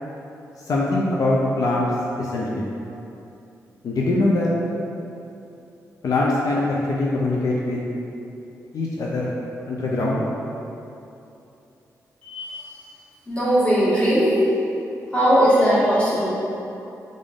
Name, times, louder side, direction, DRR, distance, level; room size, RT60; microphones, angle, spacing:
voice 1, 0.7-1.9 2.2-2.7 3.8-4.5 6.0-6.6 6.9-7.8 8.7-9.3 9.7-10.2, left 2 dB, 70° left, -4 dB, 0.4 m, -22 dB
voice 2, 12.2-12.6 13.3-14.4 15.1-16.3, equal, 20° left, -10 dB, 1.5 m, -19 dB
3.6 x 2.5 x 3.4 m, 2.8 s
cardioid pair, 60°, 6 cm